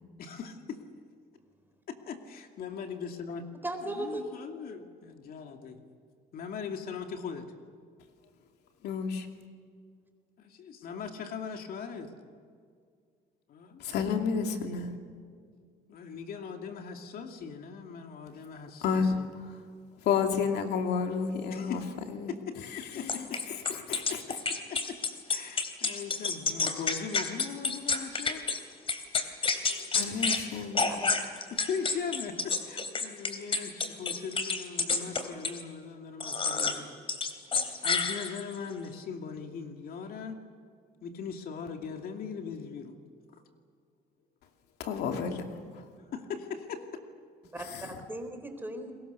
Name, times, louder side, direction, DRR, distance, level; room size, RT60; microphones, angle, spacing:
voice 1, 0.2-0.8 1.9-3.5 3.8-5.8 6.3-7.5 10.4-12.1 13.5-13.8 15.9-19.3 21.5-21.8 22.3-23.4 23.9-24.0 24.7-25.0 25.3-28.4 29.7-29.9 31.5-37.0 37.8-40.4 41.0-43.0 43.3-43.4 46.1-46.9, left 6 dB, 60° left, 4 dB, 2.6 m, -40 dB
voice 2, 3.6-4.4 30.9-31.1 47.5-48.9, right 1 dB, 10° right, 6 dB, 3.9 m, -37 dB
voice 3, 8.8-9.3 13.8-15.0 18.8-19.6 20.0-21.8 22.1-22.3 22.7-24.2 29.9-30.9 44.8-45.8 47.6-48.0, left 6 dB, 80° left, 4 dB, 2.6 m, -31 dB
sound 1, 23.1-28.6 28.9-30.4 30.7-35.6 36.2-36.8 37.1-38.6, left 4 dB, 35° left, 3.0 m, -30 dB
30.0 x 22.0 x 6.9 m, 2.1 s
cardioid pair, 110°, 17 cm